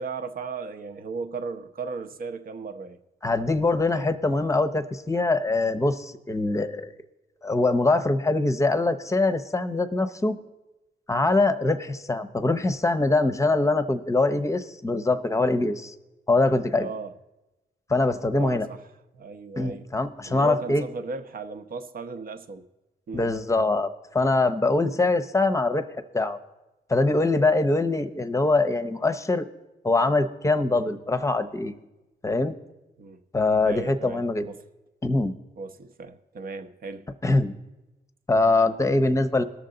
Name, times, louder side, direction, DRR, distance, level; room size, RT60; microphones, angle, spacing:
voice 1, 0.0-3.0 3.9-4.1 16.7-17.2 18.3-18.8 19.1-19.9 20.2-22.7 23.1-23.3 24.9-25.0 28.0-28.1 33.0-33.2 33.6-34.6 35.6-37.1, right 4 dB, 55° right, 0.8 m, -36 dB
voice 2, 3.2-6.9 7.4-10.4 11.1-15.9 16.3-16.9 17.9-18.7 19.6-20.8 23.1-25.9 26.1-26.4 26.9-29.5 29.8-31.7 32.2-32.5 33.3-34.5 35.0-35.3 37.2-37.5 38.3-39.4, left 2 dB, 15° left, 0.7 m, -23 dB
19.5 x 6.7 x 3.8 m
cardioid pair, 95°, 18 cm